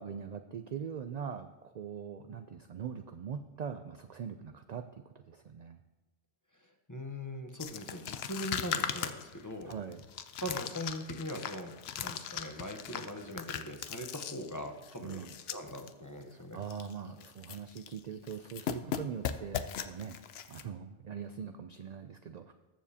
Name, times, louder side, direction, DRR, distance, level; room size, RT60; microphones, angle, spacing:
voice 1, 0.0-4.9 5.1-5.8 9.7-10.0 15.0-15.4 16.3-20.2 20.5-22.5, right 7 dB, 60° right, 8 dB, 0.4 m, -42 dB
voice 2, 6.9-9.7 10.4-16.6, left 1 dB, 20° left, 4 dB, 0.8 m, -41 dB
sound 1, 7.6-15.9 16.2-16.3 16.6-16.9 17.2-18.0 18.3-20.6, left 9 dB, 70° left, 0.8 m, -39 dB
20.0 x 7.1 x 2.8 m, 1.2 s
omnidirectional pair, 1.2 m